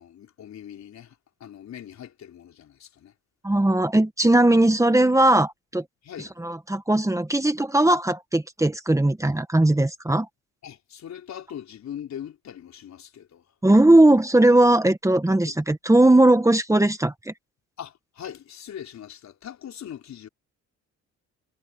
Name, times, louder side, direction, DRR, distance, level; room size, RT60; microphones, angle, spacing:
voice 1, 0.0-3.1 4.5-4.6 6.0-6.3 10.6-13.4 15.4-15.6 17.8-20.3, left 9 dB, 65° left, 4.4 m, -41 dB
voice 2, 3.4-5.8 6.4-10.3 13.6-17.3, right 1 dB, 10° right, 1.9 m, -19 dB
cardioid pair, 90°, 30 cm